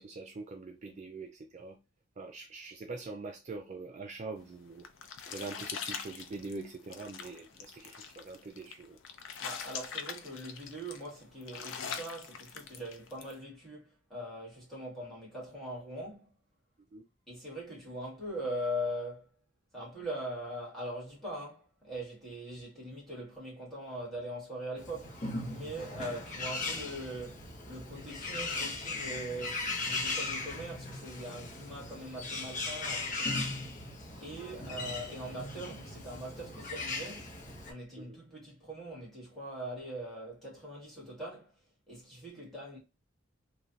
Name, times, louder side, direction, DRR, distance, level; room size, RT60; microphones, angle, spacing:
voice 1, 0.0-1.7 2.2-4.8 5.3-7.4 7.8-9.0 16.9-17.0, right 3 dB, 35° right, 0.4 m, -43 dB
sound 1, 4.4-13.3, left 7 dB, 65° left, 0.5 m, -43 dB
voice 2, 9.4-16.4 17.3-19.3 19.7-33.9 34.2-41.5 41.9-42.8, equal, ahead, 1.7 m, -41 dB
Bird, 24.8-37.7, left 3 dB, 40° left, 0.8 m, -38 dB
3.2 x 2.4 x 2.6 m
head